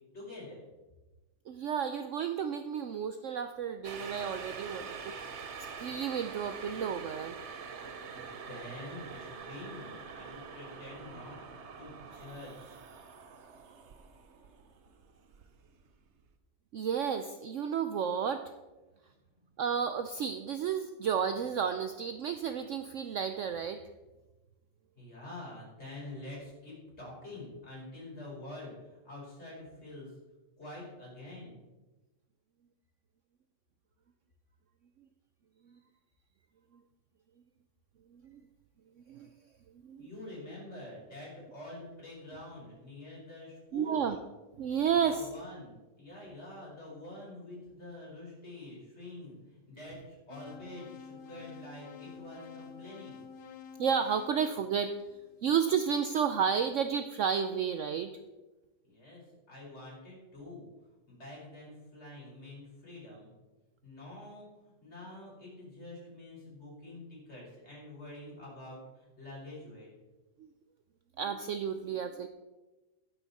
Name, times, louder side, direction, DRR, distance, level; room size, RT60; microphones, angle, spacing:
voice 1, 0.1-0.6 8.1-11.4 11.8-12.8 19.2-19.3 25.0-30.1 30.6-31.6 40.0-44.0 45.0-53.3 58.8-60.7 61.1-63.3 63.8-64.5 64.8-69.9, left 2 dB, 35° left, -5 dB, 5.1 m, -47 dB
voice 2, 1.5-4.9 5.8-7.4 16.7-18.5 19.6-23.8 38.1-38.4 39.1-39.3 39.8-40.1 43.7-44.2 44.6-45.3 53.8-54.9 55.4-58.1 71.2-72.3, right 7 dB, 80° right, 9 dB, 0.7 m, -31 dB
sound 1, 3.8-15.9 16.3-16.4, right 5 dB, 50° right, 1.0 m, -45 dB
sound 2, 50.3-55.4, left 6 dB, 50° left, 0.6 m, -49 dB
12.0 x 10.0 x 4.2 m, 1.1 s
omnidirectional pair, 1.9 m